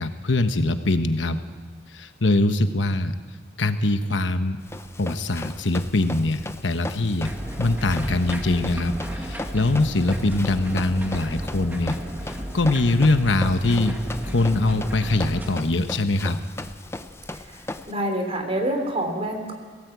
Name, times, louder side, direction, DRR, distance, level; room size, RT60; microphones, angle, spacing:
voice 1, 0.0-1.4 1.9-3.1 3.6-4.6 5.0-7.3 7.6-12.0 12.5-13.9 14.2-16.4, left 2 dB, 70° left, 9 dB, 1.1 m, -22 dB
Run, 4.6-17.9, left 2 dB, 15° left, 0.6 m, -37 dB
sound 1, 7.2-15.5, equal, 10° right, 2.0 m, -34 dB
voice 2, 17.3-19.5, right 1 dB, 35° right, 4 dB, 3.4 m, -27 dB
21.5 x 17.0 x 8.2 m, 1.5 s
head